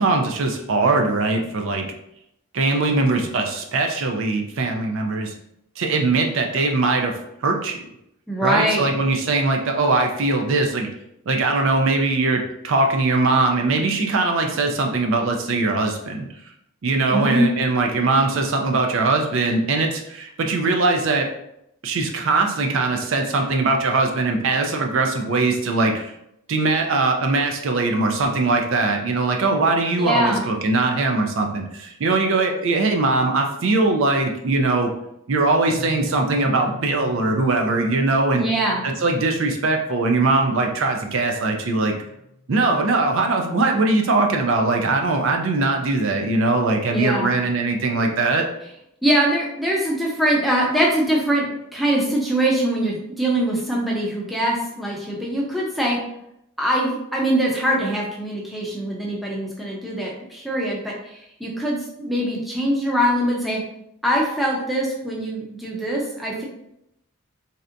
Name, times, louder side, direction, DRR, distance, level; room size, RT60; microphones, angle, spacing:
voice 1, 0.0-1.9 2.5-5.3 5.8-7.1 7.4-7.8 8.4-10.9 11.3-16.3 16.8-21.3 21.8-26.1 26.5-34.9 35.3-38.5 38.8-41.9 42.5-48.4, right 3 dB, 65° right, 3 dB, 0.4 m, -21 dB
voice 2, 8.3-8.9 17.1-17.5 30.0-30.4 38.3-38.8 46.9-47.3 49.0-56.0 56.6-63.6 64.0-66.4, right 1 dB, ahead, -4 dB, 0.5 m, -23 dB
Marimba xylophone / Wood, 27.9-30.8, left 1 dB, 55° left, 0.6 m, -45 dB
sound 1, 35.6-42.8, equal, 25° right, 0.8 m, -39 dB
3.2 x 2.7 x 2.5 m, 0.79 s
head